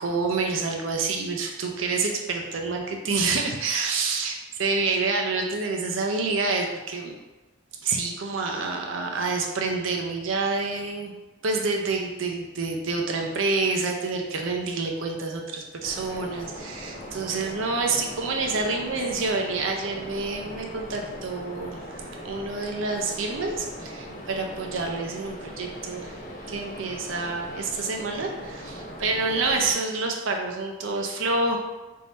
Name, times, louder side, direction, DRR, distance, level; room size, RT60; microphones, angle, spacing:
voice 1, 0.0-7.2 7.8-11.1 11.4-26.2 26.5-31.6, right 3 dB, 80° right, 2 dB, 0.6 m, -28 dB
sound 1, 15.8-29.7, equal, 40° left, 0.6 m, -40 dB
3.4 x 2.7 x 4.1 m, 1.1 s
head